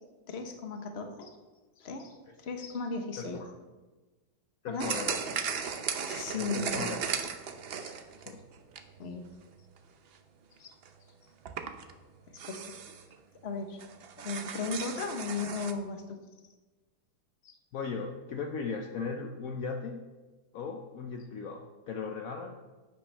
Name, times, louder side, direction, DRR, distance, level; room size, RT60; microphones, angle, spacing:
voice 1, 0.3-1.3 1.8-2.1 2.4-3.4 4.7-4.9 6.0-6.9 7.8-8.0 9.0-9.3 10.6-10.7 12.5-12.8 13.4-13.8 14.2-16.2 17.4-17.5, left 4 dB, 45° left, 5 dB, 1.2 m, -36 dB
voice 2, 3.2-3.5 4.6-5.4 6.3-7.0 8.3-8.4 17.7-20.0 20.5-22.5, left 5 dB, 65° left, 3 dB, 1.1 m, -37 dB
sound 1, 4.8-9.2 9.6-9.8 10.6-10.7 10.8-10.9 11.5-11.9 12.4-13.1 13.5-13.6 13.8-15.7, right 6 dB, 55° right, 0.7 m, -36 dB
10.5 x 8.5 x 3.4 m, 1.2 s
omnidirectional pair, 1.7 m